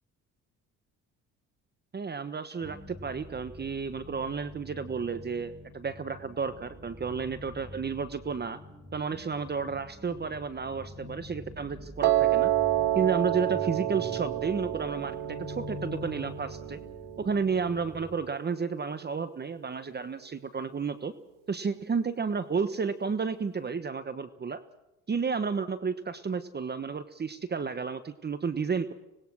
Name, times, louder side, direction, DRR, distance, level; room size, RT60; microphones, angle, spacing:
voice 1, 1.9-8.6 8.9-12.5 12.9-16.8 17.2-21.1 21.5-24.6 25.1-28.9, right 5 dB, 30° right, 12 dB, 1.3 m, -32 dB
sound 1, 2.6-18.2, left 2 dB, 5° right, 7.9 m, -45 dB
Piano, 12.0-18.2, right 14 dB, 85° right, 1.3 m, -29 dB
25.5 x 20.0 x 6.3 m, 0.95 s
cardioid pair, 85°, 32 cm